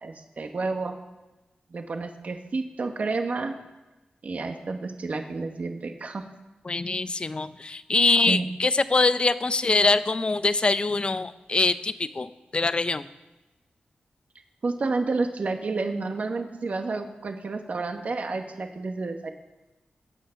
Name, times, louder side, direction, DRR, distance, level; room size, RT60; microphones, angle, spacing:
voice 1, 0.0-1.0 1.7-3.5 4.2-6.2 8.3-8.4 14.6-19.3, right 3 dB, 50° right, 5 dB, 1.3 m, -30 dB
voice 2, 6.6-13.1, left 3 dB, 35° left, 13 dB, 0.6 m, -24 dB
20.5 x 9.4 x 5.9 m, 1.1 s
wide cardioid pair, 140°, 3 cm